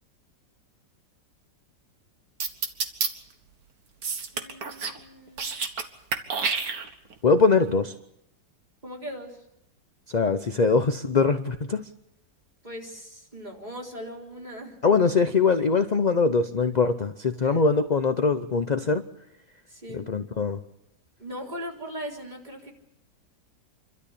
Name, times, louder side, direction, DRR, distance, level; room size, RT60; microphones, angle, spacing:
sound 1, 2.4-3.1 4.0-5.0 5.3-5.8 6.1-7.1, right 5 dB, 60° right, 2.0 m, -28 dB
voice 1, 4.3-5.5 8.8-9.4 12.6-14.8 17.4-17.6 19.7-20.1 21.2-22.7, equal, 25° right, -1 dB, 4.0 m, -39 dB
voice 2, 7.2-7.9 10.1-11.8 14.8-19.0 19.9-20.6, left 4 dB, 45° left, 8 dB, 0.6 m, -22 dB
28.0 x 13.0 x 8.5 m, 0.84 s
omnidirectional pair, 1.9 m